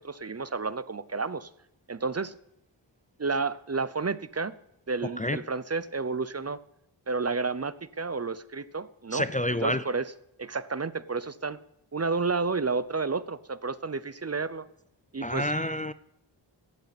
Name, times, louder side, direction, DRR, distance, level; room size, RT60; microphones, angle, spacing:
voice 1, 0.0-1.5 1.9-2.4 3.2-4.5 4.9-6.6 7.1-9.3 9.6-10.1 10.4-11.6 11.9-14.7 15.1-15.5, right 4 dB, 35° right, 0.7 m, -31 dB
voice 2, 5.0-5.4 9.1-9.8 15.2-15.9, left 1 dB, 15° left, 0.5 m, -28 dB
17.0 x 13.5 x 4.1 m
wide cardioid pair, 70°, 46 cm